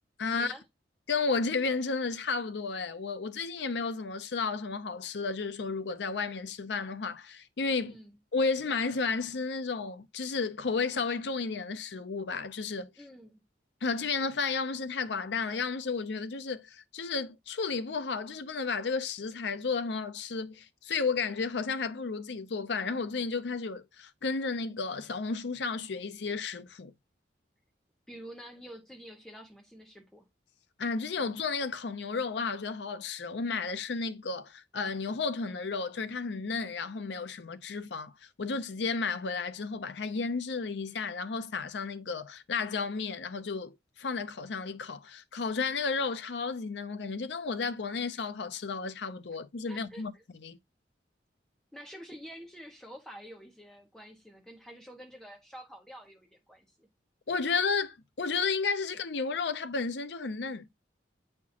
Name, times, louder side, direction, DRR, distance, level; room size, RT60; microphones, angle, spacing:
voice 1, 0.2-0.5 1.1-7.9 8.3-12.9 13.8-26.9 30.8-50.1 50.4-50.6 57.3-60.7, left 4 dB, 75° left, 0.6 m, -33 dB
voice 2, 7.8-8.2 13.0-13.4 28.1-30.3 49.7-50.2 51.7-56.9, equal, 5° left, 1.3 m, -48 dB
8.3 x 4.4 x 2.8 m
head